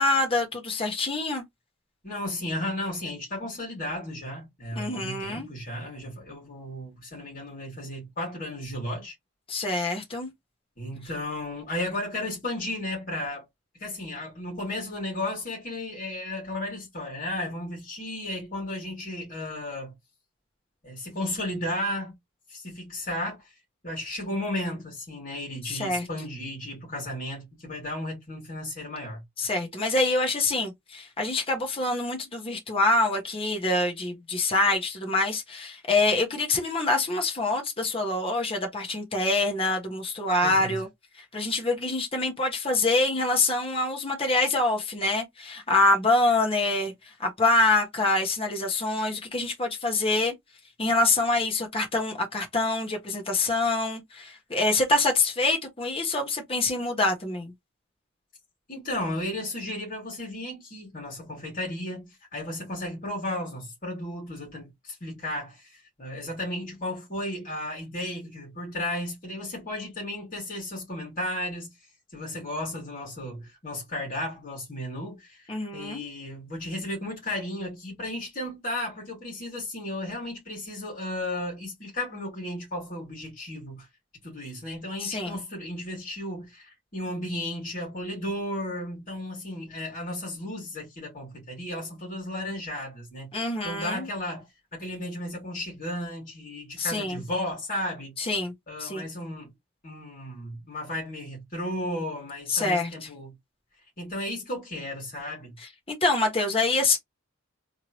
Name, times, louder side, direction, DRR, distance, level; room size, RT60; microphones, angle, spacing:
voice 1, 0.0-1.4 4.8-5.5 9.5-10.3 25.6-26.1 29.4-40.9 41.3-46.9 47.2-50.3 50.8-57.5 75.5-76.0 85.0-85.4 93.3-94.1 96.8-97.2 98.2-98.5 98.8-99.1 102.5-103.1 105.9-107.0, left 2 dB, 25° left, 1.2 m, -25 dB
voice 2, 2.0-9.1 10.8-13.5 13.8-19.9 20.8-22.1 22.5-23.5 23.8-29.2 40.4-40.8 58.7-71.7 72.1-83.9 84.2-98.2 98.7-99.5 99.8-103.3 104.0-105.6, left 1 dB, 40° left, 2.2 m, -34 dB
3.6 x 3.1 x 2.9 m
head